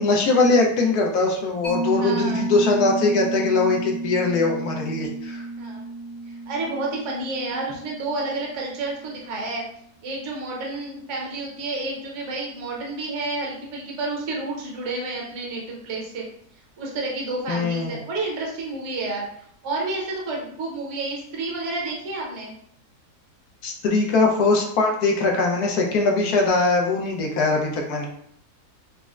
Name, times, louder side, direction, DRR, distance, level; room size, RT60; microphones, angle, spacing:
voice 1, 0.0-5.4 17.5-18.0 23.6-28.1, left 3 dB, 75° left, 1 dB, 1.1 m, -21 dB
Mallet percussion, 1.6-8.7, right 2 dB, 50° left, 1.3 m, -31 dB
voice 2, 1.9-2.5 5.6-5.9 6.3-9.6 10.0-16.2 16.8-22.5, right 2 dB, 55° right, -2 dB, 1.0 m, -30 dB
4.0 x 2.1 x 2.4 m, 0.67 s
omnidirectional pair, 1.7 m